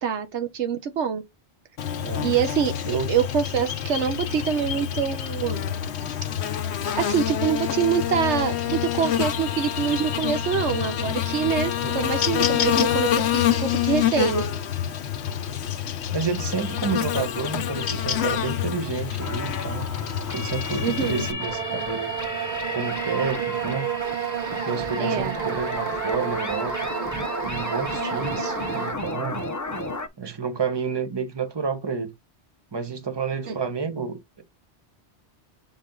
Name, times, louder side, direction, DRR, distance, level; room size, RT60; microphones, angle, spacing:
voice 1, 0.0-1.2 2.2-5.8 6.9-14.4 20.8-21.3 25.0-25.4 33.5-33.6, right 7 dB, 80° right, 1.2 m, -25 dB
Buzz, 1.8-21.3, left 10 dB, 70° left, 1.0 m, -27 dB
voice 2, 2.0-2.3 2.8-3.1 11.8-12.0 16.1-19.9 20.3-22.1 22.7-23.9 24.5-26.9 27.4-29.5 30.2-32.1 32.7-34.4, right 5 dB, 25° right, 1.0 m, -30 dB
sound 1, 19.2-30.1, left 2 dB, 20° left, 0.5 m, -33 dB
sound 2, 21.4-28.9, right 9 dB, 50° right, 0.7 m, -31 dB
7.1 x 4.1 x 3.8 m
omnidirectional pair, 1.2 m